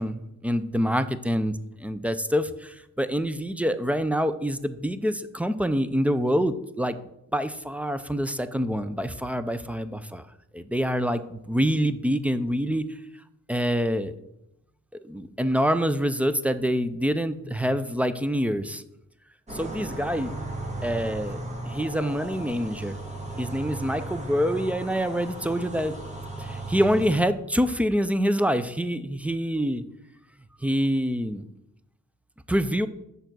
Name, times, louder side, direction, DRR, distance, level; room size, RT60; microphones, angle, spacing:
voice 1, 0.0-1.5 1.8-7.0 7.3-10.2 10.5-12.9 13.5-14.1 15.0-18.8 19.5-20.3 20.8-23.0 23.4-25.9 26.4-29.8 30.6-31.4 32.5-32.9, equal, 5° right, 12 dB, 0.4 m, -26 dB
sound 1, 19.5-27.2, right 1 dB, 25° right, 1.5 m, -36 dB
6.8 x 5.3 x 6.1 m, 0.84 s
cardioid pair, 110°, 29 cm